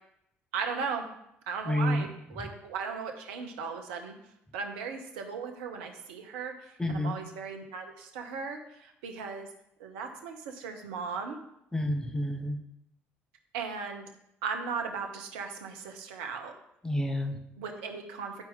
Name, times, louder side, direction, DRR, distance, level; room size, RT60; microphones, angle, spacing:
voice 1, 0.5-1.1 1.5-4.2 4.5-9.5 9.8-11.4 13.5-14.1 14.4-16.5 17.6-18.4, right 5 dB, 70° right, 4 dB, 1.0 m, -37 dB
voice 2, 1.7-2.1 6.8-7.2 11.7-12.6 16.8-17.4, left 1 dB, 10° left, 5 dB, 1.1 m, -29 dB
10.5 x 4.5 x 3.7 m, 0.79 s
figure-of-eight pair, 55°, 7 cm